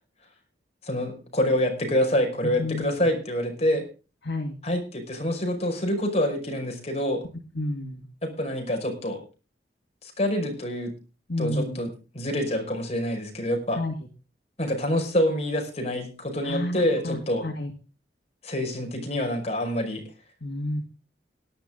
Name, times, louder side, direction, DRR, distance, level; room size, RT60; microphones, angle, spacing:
voice 1, 0.8-3.9 4.6-7.3 8.2-9.2 10.0-10.9 11.4-11.9 12.1-13.8 14.6-17.5 18.4-20.0, left 1 dB, 35° left, 3 dB, 5.4 m, -26 dB
voice 2, 2.6-3.1 4.2-4.6 7.6-8.1 11.3-11.8 13.7-13.9 16.4-17.7 20.4-20.8, left 1 dB, 70° left, 3 dB, 2.1 m, -30 dB
18.0 x 11.5 x 3.8 m, 0.34 s
head